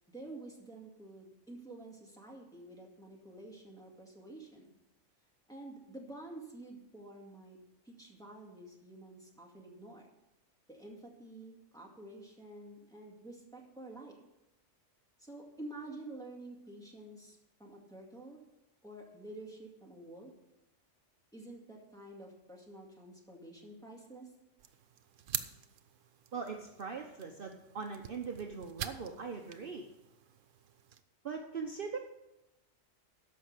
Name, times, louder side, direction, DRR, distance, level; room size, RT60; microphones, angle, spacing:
voice 1, 0.1-4.7 5.5-7.6 7.8-10.1 10.7-14.2 15.2-18.4 18.8-20.3 21.3-24.3, right 2 dB, 5° left, -2 dB, 2.1 m, -49 dB
sound 1, 24.6-31.0, right 9 dB, 90° right, 1.1 m, -45 dB
voice 2, 26.3-29.9 31.2-32.0, right 5 dB, 50° right, 3 dB, 0.9 m, -41 dB
13.5 x 5.4 x 6.6 m, 0.90 s
omnidirectional pair, 1.3 m